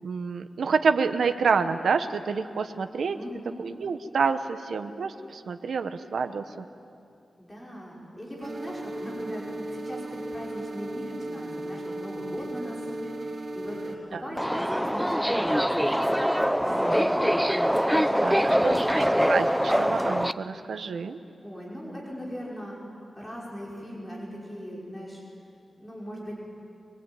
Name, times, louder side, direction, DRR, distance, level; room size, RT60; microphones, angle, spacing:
voice 1, 0.0-3.2 3.6-6.6 14.1-14.2 18.2-21.2, right 5 dB, 85° right, 8 dB, 1.1 m, -28 dB
voice 2, 3.1-3.6 7.4-9.4 9.7-17.3 17.6-19.0 21.4-22.8 23.2-25.2 25.8-26.3, equal, 15° left, -4 dB, 5.7 m, -39 dB
sound 1, 8.4-14.0, right 1 dB, 60° right, 3.9 m, -36 dB
Subway metro underground, 14.4-20.3, equal, ahead, 0.7 m, -24 dB
23.5 x 23.0 x 9.1 m, 2.6 s
wide cardioid pair, 100°, 0 cm